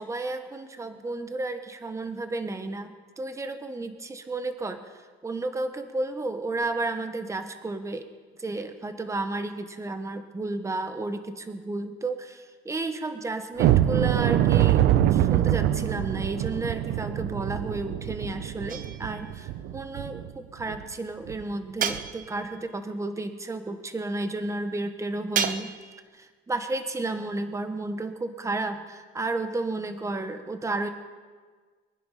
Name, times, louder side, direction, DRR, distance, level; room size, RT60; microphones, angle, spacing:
voice 1, 0.0-8.1 8.4-25.7 26.1-30.9, right 2 dB, 15° right, 8 dB, 1.3 m, -32 dB
sound 1, 13.6-20.3 20.7-20.8 21.3-21.4 21.9-22.1, right 12 dB, 85° right, 0.7 m, -24 dB
sound 2, 18.7-19.3 21.8-22.6 25.3-26.0, right 7 dB, 55° right, 1.0 m, -31 dB
24.0 x 10.5 x 5.1 m, 1.5 s
cardioid pair, 110°, 17 cm